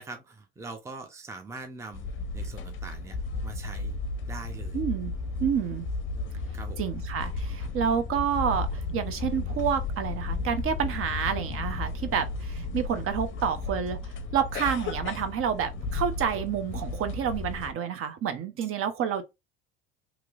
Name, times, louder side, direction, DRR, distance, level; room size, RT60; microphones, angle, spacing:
voice 1, 0.0-3.2 3.4-4.0 4.3-4.8 6.5-6.8 18.6-18.7, right 3 dB, 10° right, 0.6 m, -42 dB
sound 1, 1.9-17.7, left 3 dB, 40° left, 0.6 m, -34 dB
voice 2, 4.7-5.1 5.4-5.9 6.8-14.0 14.3-19.2, right 8 dB, 45° right, 0.8 m, -29 dB
3.0 x 2.8 x 2.5 m
supercardioid pair, 95°, 31 cm